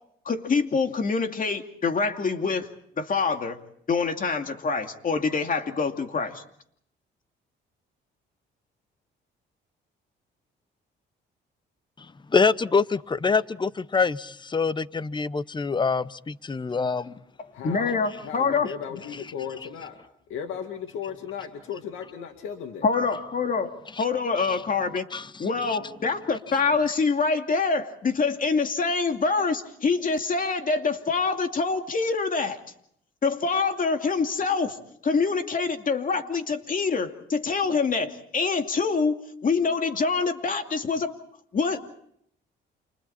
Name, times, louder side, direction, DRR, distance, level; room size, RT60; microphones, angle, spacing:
voice 1, 0.2-2.7 3.0-3.6 3.9-6.4 17.4-18.7 22.8-25.1 25.4-32.6 33.2-34.8 35.0-41.1 41.5-41.8, left 4 dB, 45° left, 2.5 m, -25 dB
voice 2, 12.0-17.1 24.0-24.1 25.1-25.4, left 4 dB, 25° left, 0.9 m, -25 dB
voice 3, 16.7-17.1 17.5-20.0 20.3-22.8, left 8 dB, 85° left, 2.2 m, -36 dB
30.0 x 28.0 x 4.3 m
cardioid pair, 90°, 20 cm